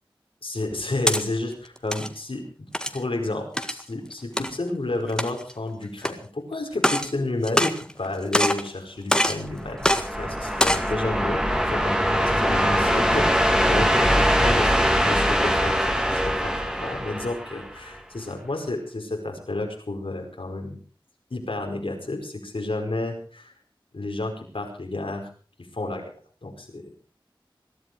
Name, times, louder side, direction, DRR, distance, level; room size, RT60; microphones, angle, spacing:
voice 1, 0.4-20.8 21.3-23.5 23.9-25.3 25.7-26.1 26.4-26.9, left 2 dB, 90° left, 2 dB, 5.0 m, -31 dB
sound 1, 0.7-1.2 1.8-2.1 2.7-3.0 3.6-3.8 4.4-4.5 5.1-5.5 6.0-6.1 6.7-7.1 7.4-8.1 8.3-8.7 9.1-9.4 9.8-10.0 10.5-10.9, equal, 10° left, 1.9 m, -23 dB
sound 2, 9.5-17.9, equal, 10° right, 2.5 m, -22 dB
22.0 x 12.5 x 4.8 m, 0.41 s
wide cardioid pair, 45°, 9 cm